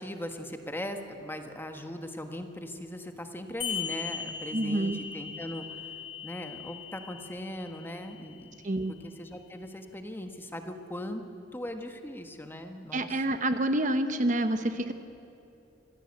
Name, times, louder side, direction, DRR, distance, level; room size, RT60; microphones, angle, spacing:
voice 1, 0.0-5.7 6.2-8.6 9.0-11.2 11.5-13.4, left 1 dB, 10° left, 5 dB, 1.4 m, -39 dB
sound 1, 3.6-8.6, left 7 dB, 30° left, 5.5 m, -39 dB
voice 2, 4.5-5.0 8.6-8.9 12.9-14.9, right 1 dB, 45° right, 9 dB, 1.0 m, -28 dB
25.5 x 16.5 x 8.1 m, 2.8 s
head